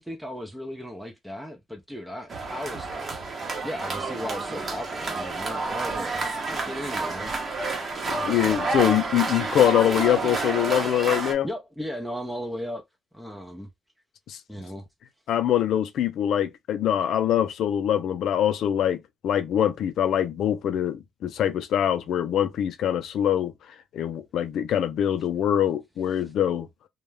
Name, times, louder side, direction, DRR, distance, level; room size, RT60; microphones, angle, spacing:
voice 1, 0.0-3.3 3.6-7.6 8.1-8.5 11.4-12.8 13.1-13.7 14.5-14.8, equal, ahead, 0.5 m, -36 dB
sound 1, 2.3-11.3, right 3 dB, 45° right, 0.8 m, -29 dB
voice 2, 8.1-11.5 14.3-14.4 15.3-23.5 23.9-26.7, left 10 dB, 75° left, 0.4 m, -24 dB
2.3 x 2.0 x 3.1 m
cardioid pair, 90°, 0 cm